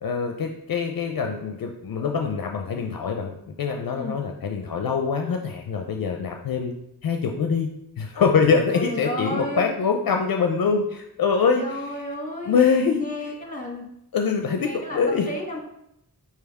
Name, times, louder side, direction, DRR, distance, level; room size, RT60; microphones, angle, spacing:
voice 1, 0.0-6.7 7.0-7.7 8.0-11.8 12.5-13.1 14.1-15.3, left 5 dB, 65° left, 3 dB, 0.5 m, -24 dB
voice 2, 3.9-4.2 8.5-9.7 11.6-12.6 13.0-13.9 14.6-15.6, left 1 dB, 20° left, 1 dB, 1.2 m, -32 dB
4.5 x 3.4 x 3.5 m, 0.79 s
cardioid pair, 40°, 38 cm